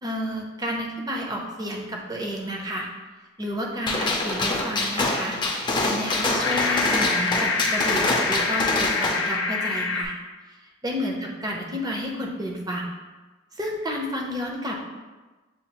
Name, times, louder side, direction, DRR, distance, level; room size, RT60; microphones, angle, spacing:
voice 1, 0.0-2.9 3.4-5.4 5.8-10.1 10.8-12.9 13.6-14.8, equal, 20° right, 0 dB, 0.6 m, -31 dB
Gunshot gunfire, 3.9-9.3, left 2 dB, 25° left, 0.5 m, -25 dB
sound 1, 6.1-10.1, left 4 dB, 80° left, 0.5 m, -26 dB
7.0 x 2.4 x 2.8 m, 1.2 s
head